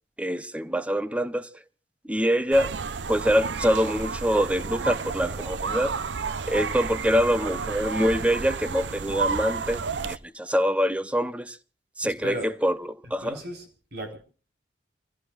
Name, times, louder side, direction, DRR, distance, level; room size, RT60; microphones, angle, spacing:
voice 1, 0.2-1.5 2.1-2.7 3.1-6.0 6.5-11.6 12.0-13.4, equal, 5° right, 0.7 m, -25 dB
sound 1, 2.5-10.2, right 5 dB, 80° right, 0.6 m, -31 dB
voice 2, 12.0-12.5 13.2-13.6 13.9-14.2, right 1 dB, 60° right, 4.3 m, -35 dB
28.5 x 16.5 x 2.4 m
head